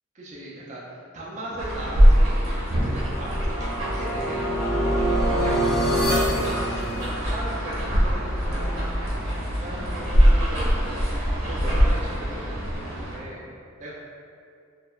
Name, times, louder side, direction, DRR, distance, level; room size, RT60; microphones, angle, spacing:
voice 1, 0.1-2.5 2.9-8.9 9.6-11.1 11.4-13.5 13.8-13.9, right 1 dB, 35° right, -6 dB, 0.4 m, -38 dB
sound 1, 1.6-13.2, equal, 80° right, 0.6 m, -23 dB
sound 2, 2.3-7.5, equal, 50° left, 0.6 m, -26 dB
2.7 x 2.0 x 2.2 m, 2.4 s
head